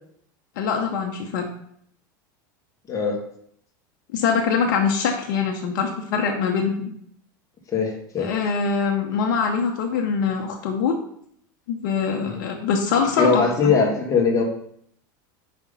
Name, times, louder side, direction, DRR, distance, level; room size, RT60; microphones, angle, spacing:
voice 1, 0.6-1.5 4.1-6.9 8.2-11.0 11.7-13.7, left 5 dB, 70° left, 2 dB, 0.8 m, -23 dB
voice 2, 2.9-3.2 7.7-8.3 13.2-14.4, left 5 dB, 30° left, 0 dB, 1.6 m, -20 dB
5.0 x 3.5 x 5.4 m, 0.67 s
supercardioid pair, 115°, 11 cm